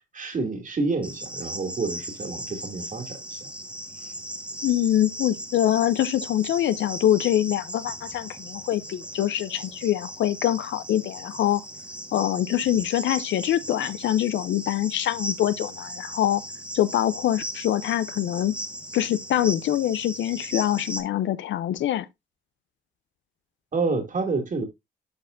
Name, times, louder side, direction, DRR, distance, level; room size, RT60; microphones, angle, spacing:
voice 1, 0.1-3.5 23.7-24.6, right 3 dB, 40° right, 2.4 m, -28 dB
Cricket, 1.0-21.0, right 1 dB, 5° right, 1.5 m, -37 dB
voice 2, 4.6-11.6 12.1-16.4 16.7-18.5 18.9-22.1, left 12 dB, 70° left, 0.6 m, -24 dB
12.5 x 4.2 x 2.5 m
cardioid pair, 90°, 20 cm